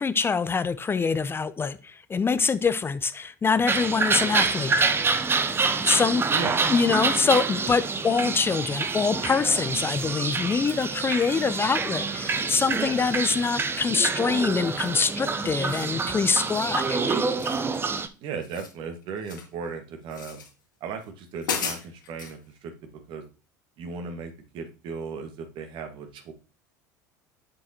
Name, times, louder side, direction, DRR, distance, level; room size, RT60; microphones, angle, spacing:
voice 1, 0.0-4.9 5.9-6.2 6.7-17.2, left 5 dB, 20° left, 0.6 m, -25 dB
sound 1, 3.7-18.1, right 4 dB, 25° right, 0.8 m, -27 dB
voice 2, 6.3-6.6 18.2-20.4 20.8-23.2 23.8-26.3, right 5 dB, 55° right, 1.8 m, -36 dB
sound 2, 14.7-15.1 15.5-16.0 16.3-16.7 17.4-18.0 18.3-19.5 20.1-20.5 21.0-21.1 21.4-22.3, left 6 dB, 85° left, 2.2 m, -35 dB
7.7 x 7.5 x 3.0 m
hypercardioid pair, 80°, 10 cm